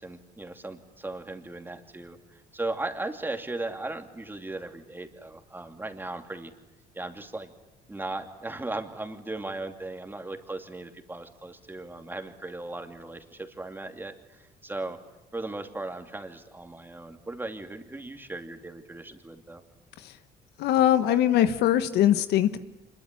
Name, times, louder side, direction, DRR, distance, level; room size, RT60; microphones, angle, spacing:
voice 1, 0.0-6.5 6.9-7.5 7.9-15.0 15.3-19.6, right 2 dB, 10° right, 6 dB, 2.7 m, -37 dB
voice 2, 20.6-22.6, left 11 dB, 80° left, 11 dB, 1.5 m, -22 dB
26.0 x 22.5 x 10.0 m, 0.97 s
cardioid pair, 110°, 17 cm